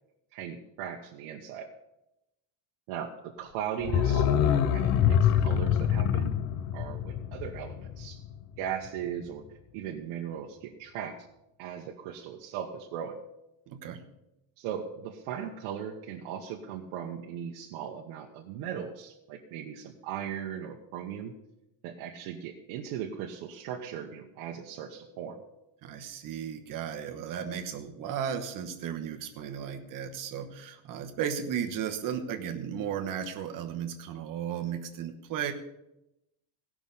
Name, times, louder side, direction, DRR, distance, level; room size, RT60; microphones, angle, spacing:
voice 1, 0.3-1.7 2.9-6.4 6.7-8.2 8.6-9.4 9.7-11.2 11.6-13.2 14.6-21.3 21.8-25.4, right 9 dB, 80° right, 0 dB, 1.2 m, -38 dB
sound 1, 3.8-8.6 8.9-9.0, left 9 dB, 35° left, 0.4 m, -26 dB
voice 2, 13.7-14.0 25.8-35.5, right 8 dB, 40° right, 4 dB, 1.2 m, -35 dB
17.0 x 6.1 x 5.5 m, 0.90 s
cardioid pair, 175°, 48 cm